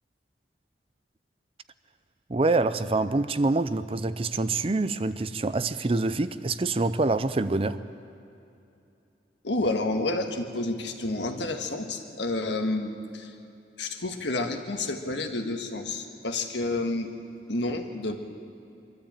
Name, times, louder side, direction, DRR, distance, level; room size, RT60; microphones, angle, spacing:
voice 1, 2.3-7.8, right 3 dB, 30° right, 13 dB, 0.5 m, -26 dB
voice 2, 9.4-13.3 13.8-17.1 17.5-18.2, left 2 dB, 75° left, 4 dB, 1.7 m, -30 dB
23.5 x 13.0 x 8.9 m, 2.7 s
head